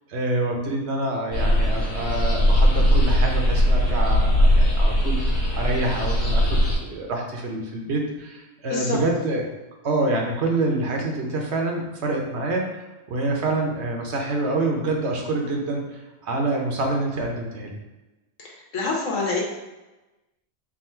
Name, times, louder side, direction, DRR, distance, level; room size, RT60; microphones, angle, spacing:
voice 1, 0.1-5.2 5.5-9.4 9.8-12.7 13.1-17.7, right 2 dB, 65° right, 1 dB, 0.9 m, -26 dB
sound 1, 1.3-6.8, equal, 50° left, 1.2 m, -19 dB
voice 2, 18.4-19.4, left 3 dB, 80° left, -2 dB, 1.3 m, -26 dB
3.7 x 2.3 x 4.3 m, 1.1 s
omnidirectional pair, 1.3 m